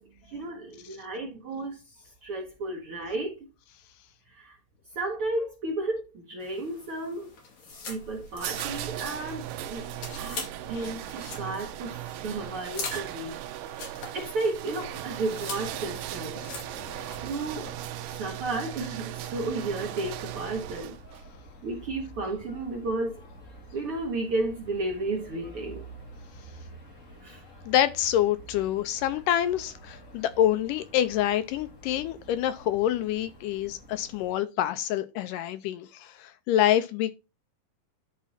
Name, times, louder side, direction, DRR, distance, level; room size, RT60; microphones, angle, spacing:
voice 1, 0.0-3.5 4.3-4.6 4.9-7.3 7.9-9.9 10.1-13.4 13.9-16.4 17.2-17.7 18.1-21.0 21.6-23.2 23.7-25.8 27.2-27.4, right 2 dB, 65° right, 1.4 m, -33 dB
sound 1, 6.4-17.7, left 4 dB, 60° left, 3.5 m, -43 dB
sound 2, 7.7-21.3, right 13 dB, 80° right, 2.0 m, -38 dB
sound 3, 15.6-34.3, right 1 dB, 30° left, 1.5 m, -49 dB
voice 2, 27.7-37.1, left 11 dB, 80° left, 2.1 m, -26 dB
11.0 x 4.2 x 4.1 m
omnidirectional pair, 4.0 m